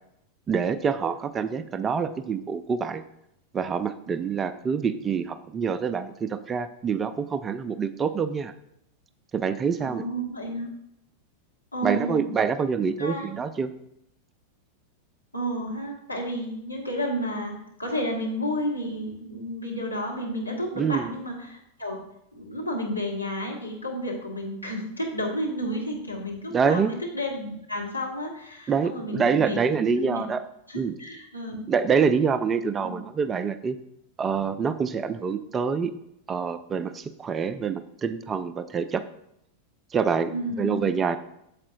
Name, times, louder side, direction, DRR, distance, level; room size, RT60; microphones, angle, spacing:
voice 1, 0.5-3.0 3.5-8.5 9.3-10.0 11.8-13.7 20.8-21.1 26.5-26.9 28.7-30.4 30.7-30.9 31.7-33.8 34.2-35.9 36.3-39.0 39.9-40.3 40.6-41.2, right 6 dB, 20° right, 12 dB, 0.4 m, -26 dB
voice 2, 9.8-10.7 11.7-12.3 13.0-13.3 15.3-17.5 17.8-22.0 22.3-30.2 30.7-31.6 32.8-32.9 40.3-40.8, equal, 85° left, -1 dB, 1.5 m, -31 dB
8.5 x 7.1 x 2.6 m, 0.78 s
figure-of-eight pair, 90°, 0 cm